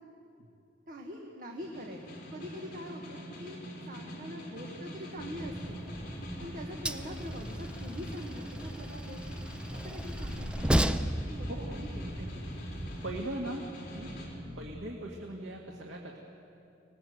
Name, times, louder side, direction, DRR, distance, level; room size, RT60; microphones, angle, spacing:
voice 1, 0.9-5.8 6.4-9.4 9.8-12.4 14.4-14.6, equal, 45° right, 1 dB, 1.8 m, -44 dB
Snare drum, 1.6-14.3, equal, 50° left, 4.8 m, -44 dB
Bass guitar, 5.2-6.4 6.7-8.8 9.1-11.2 11.5-13.6 13.9-14.7, equal, 15° left, 5.7 m, -48 dB
Train, 5.4-13.2, equal, 5° right, 0.6 m, -35 dB
voice 2, 11.4-11.8 13.0-14.2 14.6-16.2, right 1 dB, 90° right, -1 dB, 2.2 m, -40 dB
25.0 x 20.0 x 8.0 m, 2.7 s
head